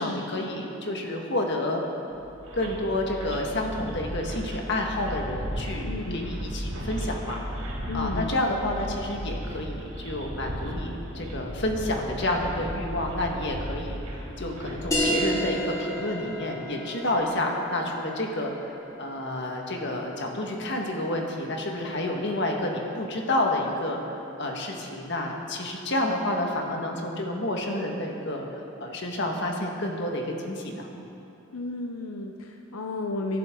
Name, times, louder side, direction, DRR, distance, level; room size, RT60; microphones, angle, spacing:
voice 1, 0.0-1.8 2.5-7.4 7.9-18.5 19.0-30.9, left 1 dB, 55° left, 1 dB, 1.8 m, -29 dB
sound 1, 2.1-15.9 16.1-16.2 16.5-16.6, equal, 85° right, 4.1 m, -35 dB
voice 2, 5.8-6.3 7.9-8.3 31.5-33.4, left 2 dB, 90° left, 3 dB, 0.8 m, -33 dB
sound 2, 14.9-20.0, equal, 15° left, 1.8 m, -31 dB
24.0 x 11.5 x 3.9 m, 2.8 s
head